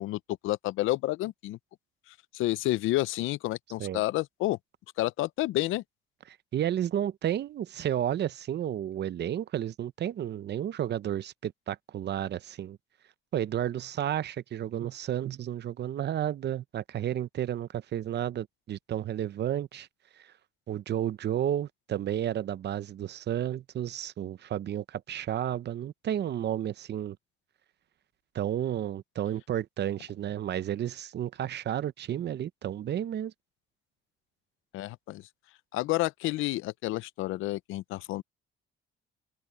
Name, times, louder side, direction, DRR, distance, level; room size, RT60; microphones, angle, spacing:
voice 1, 0.0-1.6 2.1-4.6 5.0-5.8 34.7-35.2 35.7-38.2, left 17 dB, 90° left, 0.6 m, -30 dB
voice 2, 6.3-12.8 13.3-19.9 20.7-27.2 28.3-33.3, right 11 dB, 60° right, 0.8 m, -32 dB
cardioid pair, 90°, 20 cm